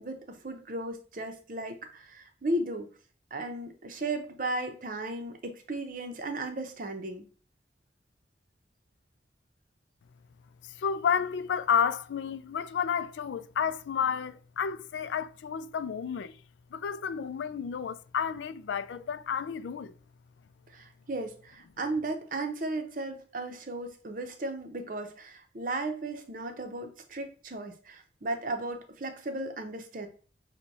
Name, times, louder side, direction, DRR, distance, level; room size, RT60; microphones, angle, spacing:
voice 1, 0.0-2.9 3.3-7.3 20.7-30.1, right 2 dB, 50° right, 0.7 m, -35 dB
voice 2, 10.6-16.4 16.7-20.0, left 7 dB, 90° left, 0.3 m, -31 dB
6.0 x 2.2 x 4.0 m
head